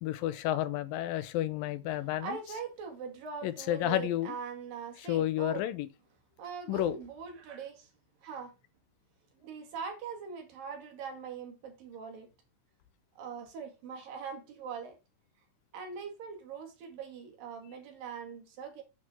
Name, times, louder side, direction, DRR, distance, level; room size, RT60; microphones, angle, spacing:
voice 1, 0.0-2.4 3.4-4.4 5.0-5.9 6.7-7.0, left 13 dB, 85° left, 2.6 m, -31 dB
voice 2, 2.2-5.6 6.4-7.9 8.2-8.5 9.4-12.3 13.2-15.0 15.7-18.8, right 6 dB, 75° right, 3.9 m, -42 dB
9.0 x 6.2 x 4.4 m
omnidirectional pair, 4.0 m